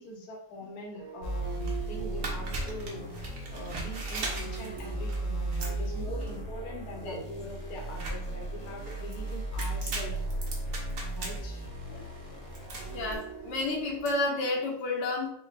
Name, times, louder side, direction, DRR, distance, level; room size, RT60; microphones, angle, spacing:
voice 1, 0.0-3.1 3.5-10.1 11.1-11.6, equal, 70° left, -1 dB, 1.3 m, -42 dB
sound 1, 0.9-14.7, right 8 dB, 80° right, 1.4 m, -47 dB
sound 2, 1.2-13.1, right 1 dB, 50° left, 1.1 m, -36 dB
sound 3, 1.6-14.1, right 2 dB, 55° right, 1.3 m, -41 dB
voice 2, 12.9-15.3, left 2 dB, 90° left, -2 dB, 1.6 m, -31 dB
4.3 x 2.3 x 4.0 m, 0.75 s
omnidirectional pair, 1.8 m